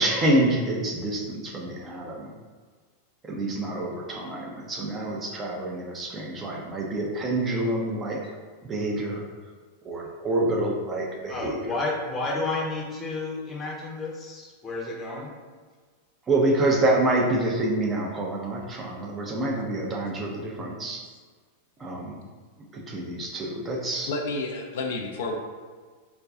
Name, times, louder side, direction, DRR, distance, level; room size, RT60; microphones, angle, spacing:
voice 1, 0.0-2.3 3.3-8.2 8.6-9.2 9.8-11.6 16.3-21.0 21.8-22.2 22.7-24.1, right 1 dB, 20° right, -1 dB, 0.5 m, -27 dB
voice 2, 11.3-15.3, left 2 dB, 20° left, -2 dB, 0.6 m, -31 dB
voice 3, 24.1-25.4, left 3 dB, 55° left, 1 dB, 0.3 m, -31 dB
2.4 x 2.2 x 3.6 m, 1.5 s
figure-of-eight pair, 90°, 0 cm